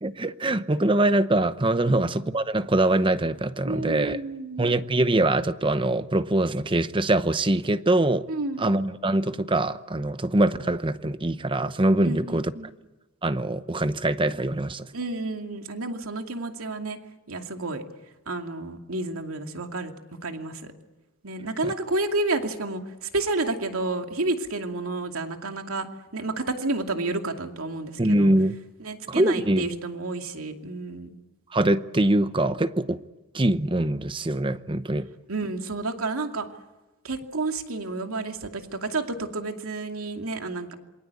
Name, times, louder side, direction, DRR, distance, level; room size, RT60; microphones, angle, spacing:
voice 1, 0.0-4.2 4.6-8.3 8.6-12.5 13.2-14.9 21.6-21.7 28.0-28.6 29.1-29.7 31.5-33.0 33.3-35.1, right 1 dB, 25° right, 0.8 m, -23 dB
voice 2, 3.6-4.8 8.3-8.7 12.0-12.7 14.9-17.0 17.3-17.8 18.3-19.9 20.2-20.7 21.2-25.9 26.1-28.3 28.8-31.2 35.3-36.5 37.0-40.7, right 2 dB, 85° right, 2.5 m, -30 dB
27.0 x 24.0 x 8.4 m
head